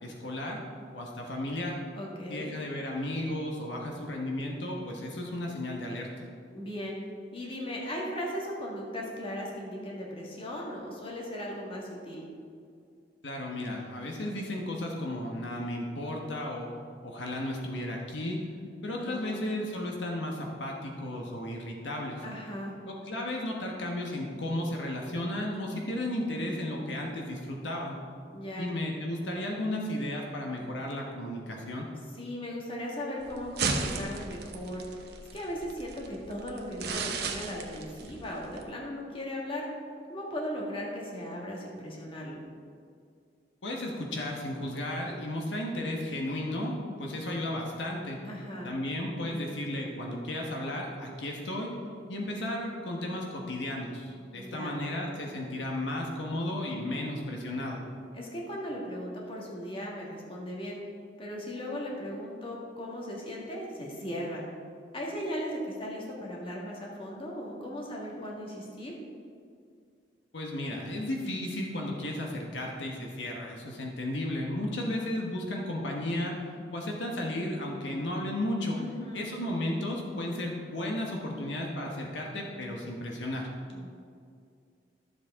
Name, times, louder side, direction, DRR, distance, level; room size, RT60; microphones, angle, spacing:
voice 1, 0.0-0.6 0.9-1.8 2.3-6.1 13.2-16.7 17.0-18.4 18.8-22.2 22.9-28.0 28.6-31.9 43.6-48.2 48.6-51.7 52.1-57.8 70.3-76.4 76.7-78.8 79.1-83.5, left 1 dB, 80° left, 0 dB, 1.3 m, -34 dB
voice 2, 2.0-2.5 6.5-7.0 7.3-12.2 19.0-19.5 22.2-22.7 28.3-28.7 32.1-34.8 35.3-39.7 40.1-42.4 48.2-48.7 54.4-54.8 58.1-60.8 61.2-64.4 64.9-69.0 78.8-79.3 83.7-83.9, equal, 30° left, -3 dB, 1.8 m, -37 dB
sound 1, 33.2-38.6, right 4 dB, 60° right, 1.0 m, -35 dB
12.5 x 7.4 x 3.7 m, 2.3 s
head